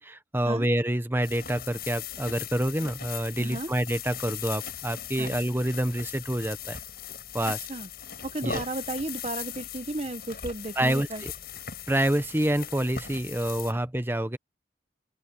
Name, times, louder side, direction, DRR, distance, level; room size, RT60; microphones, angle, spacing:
voice 1, 0.0-6.8 7.3-7.6 8.4-8.6 10.8-11.3 11.9-14.4, right 1 dB, 10° right, 1.1 m, -27 dB
sound 1, 1.2-13.7, left 8 dB, 55° left, 7.8 m, -39 dB
voice 2, 3.4-3.7 5.2-5.3 7.5-7.9 8.2-11.2, right 2 dB, 35° right, 1.2 m, -34 dB
open air
head